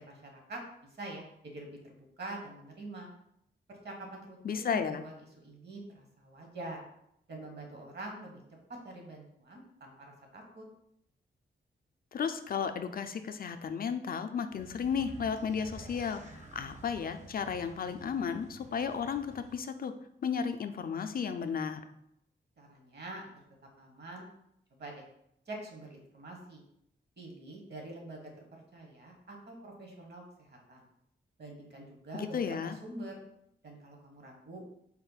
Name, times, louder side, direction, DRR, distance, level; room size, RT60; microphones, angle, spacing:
voice 1, 0.1-0.6 1.0-3.1 3.7-6.8 7.3-8.4 8.8-9.9 10.3-10.6 22.6-23.3 23.8-24.3 24.8-25.0 25.5-26.6 27.2-30.8 31.4-32.4 32.8-33.2 33.6-34.6, right 2 dB, 55° right, 1 dB, 1.2 m, -45 dB
voice 2, 4.4-5.1 12.1-19.9 20.2-21.8 32.1-32.8, left 6 dB, 45° left, 8 dB, 0.4 m, -34 dB
sound 1, 14.5-19.6, right 2 dB, 35° right, 0.7 m, -51 dB
4.2 x 2.1 x 3.9 m, 0.75 s
cardioid pair, 65°, 21 cm